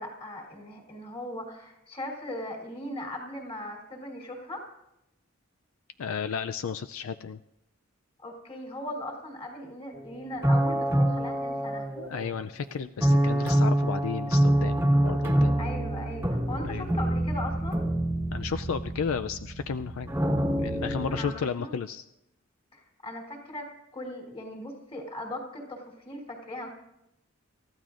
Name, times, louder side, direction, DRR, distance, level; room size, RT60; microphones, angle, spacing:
voice 1, 0.0-4.7 8.2-11.9 15.6-17.8 21.1-21.7 22.7-26.7, left 1 dB, 30° left, 1 dB, 3.2 m, -39 dB
voice 2, 6.0-7.4 12.0-15.6 16.6-16.9 18.3-20.1 20.6-22.0, left 6 dB, 75° left, 10 dB, 0.4 m, -33 dB
sound 1, 9.9-10.0 10.4-12.4 13.0-21.3, right 1 dB, 10° right, 1.3 m, -26 dB
28.0 x 14.5 x 2.5 m, 0.87 s
head